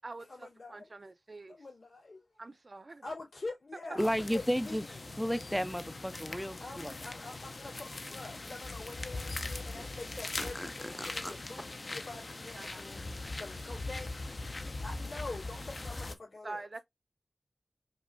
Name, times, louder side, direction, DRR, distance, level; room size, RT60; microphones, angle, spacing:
voice 1, 0.2-0.9 1.5-2.2 3.0-5.0 6.6-16.7, left 3 dB, 85° left, 2.8 m, -46 dB
voice 2, 0.7-1.6 2.4-3.0 12.6-12.8 16.4-16.8, right 3 dB, 50° right, 0.5 m, -44 dB
sound 1, 4.0-16.1, left 2 dB, 55° left, 0.6 m, -41 dB
voice 3, 4.0-4.8 5.2-6.9 10.4-10.7 11.0-11.3, equal, 5° left, 0.4 m, -33 dB
5.3 x 2.9 x 2.5 m
wide cardioid pair, 65°, 0 cm